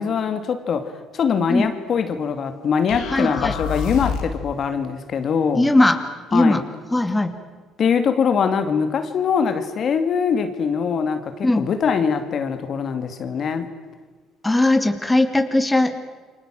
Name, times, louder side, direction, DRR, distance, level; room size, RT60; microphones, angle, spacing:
voice 1, 0.0-5.7 6.3-6.6 7.8-13.7, left 6 dB, 50° left, 8 dB, 2.5 m, -22 dB
sound 1, 2.9-4.5, left 7 dB, 85° left, 4.6 m, -28 dB
voice 2, 3.1-3.6 5.5-6.0 6.3-6.6 6.9-7.3 11.4-11.7 14.4-16.0, left 2 dB, 10° left, 7 dB, 2.6 m, -18 dB
29.5 x 25.0 x 7.7 m, 1.4 s
cardioid pair, 105°, 0 cm